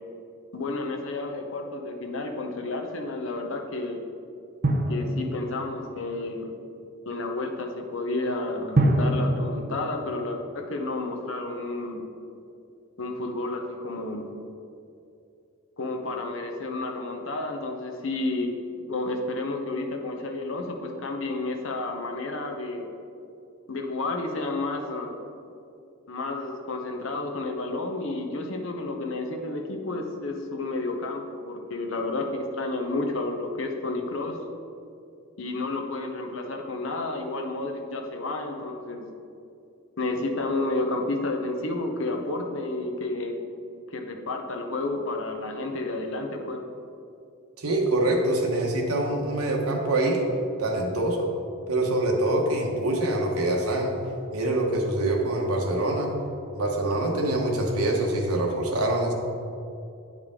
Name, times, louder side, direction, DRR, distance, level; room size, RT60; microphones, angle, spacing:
voice 1, 0.5-4.0 4.9-6.5 7.1-12.0 13.0-14.3 15.8-18.5 18.8-22.9 23.7-25.1 26.1-34.4 35.4-39.1 40.0-43.4 43.9-46.6, left 2 dB, 60° left, 3 dB, 0.8 m, -31 dB
Drum, 4.6-6.1 8.8-10.9, right 1 dB, 45° right, 0.7 m, -26 dB
voice 2, 47.6-50.2 50.6-51.3 51.7-53.9 54.3-56.1 56.5-59.1, right 1 dB, 90° right, 1 dB, 1.1 m, -25 dB
9.2 x 4.9 x 3.7 m, 2.6 s
head